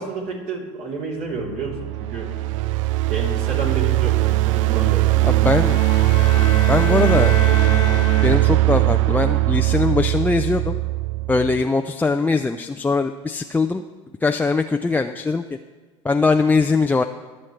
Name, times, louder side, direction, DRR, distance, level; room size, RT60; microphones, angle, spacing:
voice 1, 0.0-2.3 3.1-5.5, right 4 dB, 50° right, -2 dB, 3.5 m, -30 dB
sound 1, 1.4-11.6, right 19 dB, 75° right, 0.4 m, -19 dB
voice 2, 5.2-5.8 6.7-7.4 8.2-10.8 11.3-13.8 14.2-15.4 16.0-17.0, left 3 dB, 10° left, 5 dB, 0.4 m, -21 dB
sound 2, 5.6-8.8, left 4 dB, 45° left, 1.2 m, -30 dB
22.5 x 7.6 x 3.3 m, 1.4 s
hypercardioid pair, 80°, 17 cm